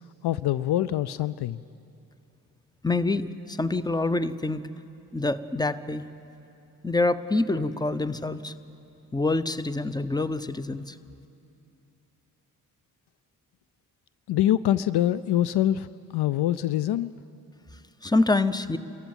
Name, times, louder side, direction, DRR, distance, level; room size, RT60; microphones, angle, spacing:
voice 1, 0.2-1.6 14.3-15.9 16.1-17.1, left 12 dB, 60° left, 17 dB, 0.5 m, -24 dB
voice 2, 2.8-4.6 5.1-6.0 6.8-8.5 9.1-10.9 18.0-18.8, left 2 dB, 10° left, 14 dB, 0.9 m, -26 dB
27.0 x 14.5 x 9.0 m, 2.6 s
hypercardioid pair, 40°, 44 cm